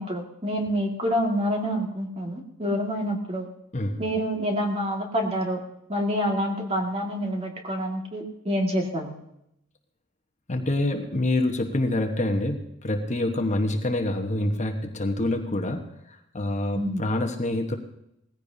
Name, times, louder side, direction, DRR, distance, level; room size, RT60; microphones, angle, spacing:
voice 1, 0.0-3.5 4.0-5.6 5.9-9.1 16.7-17.0, equal, 30° right, 1 dB, 2.0 m, -27 dB
voice 2, 10.5-17.8, left 1 dB, 35° left, 4 dB, 1.2 m, -26 dB
19.5 x 15.0 x 2.8 m, 0.81 s
head